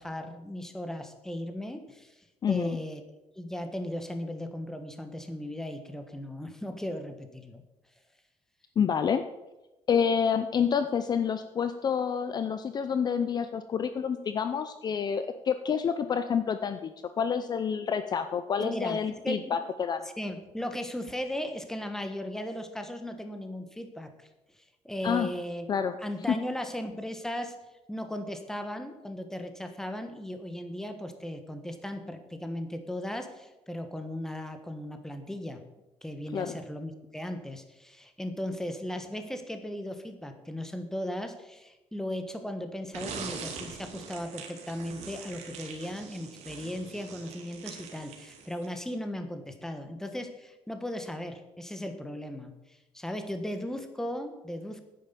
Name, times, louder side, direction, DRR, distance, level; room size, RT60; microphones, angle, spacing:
voice 1, 0.0-3.0 3.3-7.6 18.6-19.6 20.2-24.3 24.5-25.7 26.0-27.6 27.9-35.6 36.0-54.8, left 1 dB, 5° left, 7 dB, 1.3 m, -37 dB
voice 2, 2.4-2.8 8.8-9.2 9.9-16.9 17.2-20.0 25.0-25.3 25.7-25.9 26.3-26.4 36.3-36.6, left 7 dB, 40° left, 10 dB, 0.6 m, -28 dB
sound 1, 42.9-48.8, right 6 dB, 75° right, 2.5 m, -43 dB
9.8 x 9.5 x 6.8 m, 1.0 s
cardioid pair, 135°, 11 cm